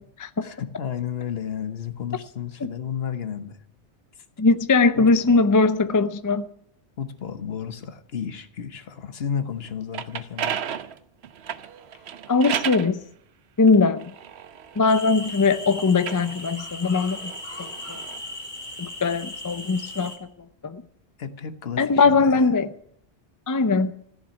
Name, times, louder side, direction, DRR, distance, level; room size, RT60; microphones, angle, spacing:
voice 1, 0.4-3.6 5.0-5.4 7.0-10.7 21.2-22.4, left 8 dB, 65° left, 1.2 m, -32 dB
voice 2, 4.4-6.5 12.3-13.0 13.6-14.1 14.8-17.3 17.6-18.0 18.8-20.1 20.6-20.8 21.8-22.7 23.5-23.9, left 4 dB, 25° left, 0.4 m, -20 dB
sound 1, 9.7-12.9 13.7-15.4 15.9-18.2, right 9 dB, 75° right, 1.0 m, -33 dB
sound 2, 14.9-20.2, left 1 dB, 45° left, 2.1 m, -37 dB
14.5 x 7.3 x 9.9 m
omnidirectional pair, 1.1 m